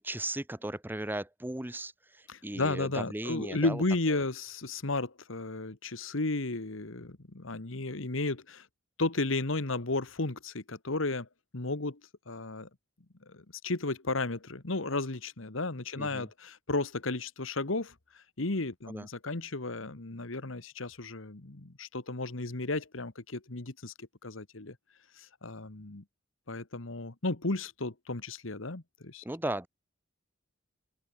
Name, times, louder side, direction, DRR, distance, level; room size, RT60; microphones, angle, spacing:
voice 1, 0.0-3.8 16.0-16.3 18.9-19.1 29.2-29.7, right 1 dB, 10° right, 1.0 m, -37 dB
voice 2, 2.3-8.7 9.0-11.3 11.5-12.0 12.3-12.7 13.3-24.7 25.2-26.0 26.5-29.2, left 2 dB, 80° left, 1.7 m, -34 dB
open air
head